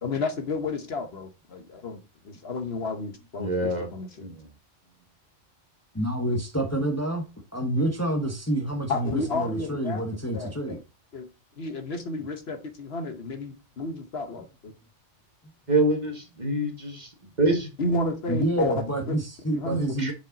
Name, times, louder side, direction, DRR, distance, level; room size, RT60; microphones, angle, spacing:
voice 1, 0.0-4.2 8.9-10.0 10.3-10.8 11.1-11.3 11.6-14.7 17.8-19.2 19.5-19.8, left 2 dB, 60° left, 1.2 m, -31 dB
voice 2, 3.4-3.9 4.2-4.3 15.7-17.1 17.4-17.7 20.0-20.1, right 1 dB, 35° right, 1.9 m, -25 dB
voice 3, 5.9-7.2 7.5-10.8 18.3-20.1, right 1 dB, 15° left, 1.1 m, -28 dB
6.8 x 5.2 x 3.9 m
omnidirectional pair, 1.2 m